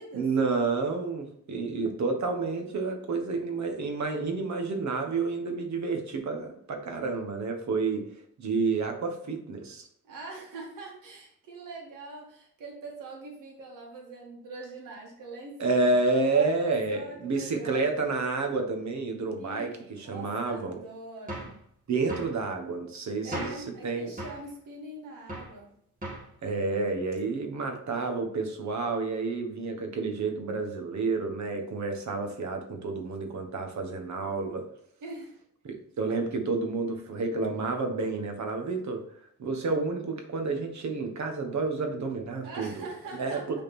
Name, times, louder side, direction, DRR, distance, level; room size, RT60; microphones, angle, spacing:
voice 1, 0.1-9.9 15.6-20.8 21.9-24.1 26.4-34.7 35.6-39.0 39.4-42.8 43.1-43.6, right 3 dB, 60° right, 4 dB, 1.4 m, -30 dB
voice 2, 10.0-16.0 16.3-17.8 19.4-21.5 23.2-25.7 35.0-35.4 42.4-43.6, right 2 dB, 90° right, -2 dB, 2.2 m, -43 dB
sound 1, 21.3-21.6 22.1-22.4 23.3-23.7 24.2-24.5 25.3-25.6 26.0-26.3, right 1 dB, 25° right, 2.3 m, -37 dB
6.6 x 4.1 x 4.3 m, 0.67 s
cardioid pair, 100°, 31 cm